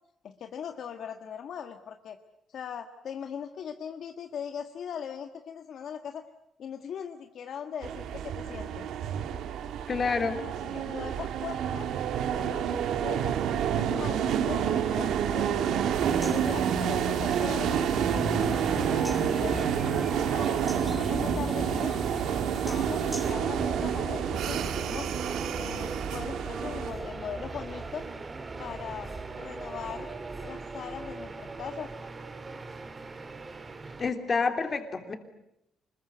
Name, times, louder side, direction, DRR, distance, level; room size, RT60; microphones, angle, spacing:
voice 1, 0.2-2.2 2.5-6.2 6.6-8.9 10.0-11.9 12.4-13.4 13.7-15.8 16.2-17.8 18.3-22.0 22.5-25.1 25.6-28.1 28.6-30.1 30.4-31.9, left 8 dB, 60° left, 6 dB, 1.4 m, -40 dB
sound 1, 7.8-26.9, right 8 dB, 80° right, 2.0 m, -29 dB
voice 2, 9.9-10.4 34.0-35.1, left 4 dB, 30° left, 6 dB, 3.1 m, -28 dB
sound 2, 15.9-23.3, equal, ahead, 2.9 m, -38 dB
sound 3, 23.2-34.1, right 3 dB, 25° right, 1.9 m, -39 dB
25.5 x 21.5 x 9.3 m, 0.83 s
cardioid pair, 135°, 0 cm